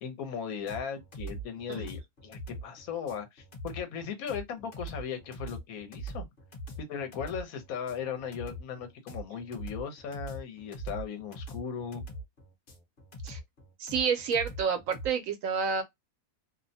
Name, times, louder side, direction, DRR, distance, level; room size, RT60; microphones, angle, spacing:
voice 1, 0.0-6.3 6.8-12.0, left 7 dB, 75° left, 1.2 m, -37 dB
sound 1, 0.7-15.1, right 1 dB, 40° left, 1.0 m, -42 dB
voice 2, 13.8-15.8, right 6 dB, 70° right, 1.0 m, -29 dB
2.8 x 2.1 x 2.6 m
omnidirectional pair, 1.5 m